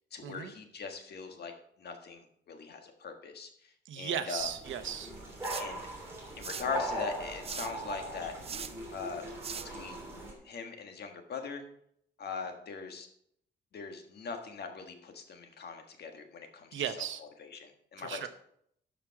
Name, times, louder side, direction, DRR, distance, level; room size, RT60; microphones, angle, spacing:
voice 1, 0.1-1.5 1.8-4.5 5.6-5.9 6.4-8.3 8.9-9.2 9.6-10.0 10.4-11.6 12.2-13.1 13.7-18.3, left 5 dB, 55° left, 5 dB, 1.5 m, -41 dB
voice 2, 3.9-5.1 16.7-17.2 18.0-18.3, right 9 dB, 80° right, 10 dB, 0.9 m, -36 dB
sound 1, 4.4-10.3, right 6 dB, 30° right, 0.4 m, -45 dB
sound 2, 4.6-10.3, right 1 dB, 10° right, 2.9 m, -40 dB
12.5 x 5.1 x 4.7 m, 0.69 s
wide cardioid pair, 145°, 20 cm